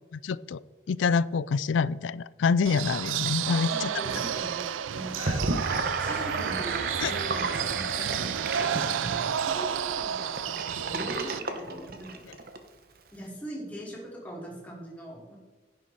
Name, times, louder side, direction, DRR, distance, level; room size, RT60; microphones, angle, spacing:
voice 1, 0.2-0.6 0.9-3.9 5.2-5.3 7.0-7.1, left 5 dB, 75° left, 20 dB, 0.4 m, -26 dB
sound 1, 2.6-11.4, right 8 dB, 90° right, 0.4 m, -31 dB
voice 2, 3.6-12.2 13.1-15.4, right 1 dB, 10° left, -4 dB, 2.9 m, -42 dB
Gurgling / Sink (filling or washing), 5.1-12.6, right 3 dB, 50° right, 1.1 m, -33 dB
10.5 x 9.4 x 4.2 m, 1.3 s
head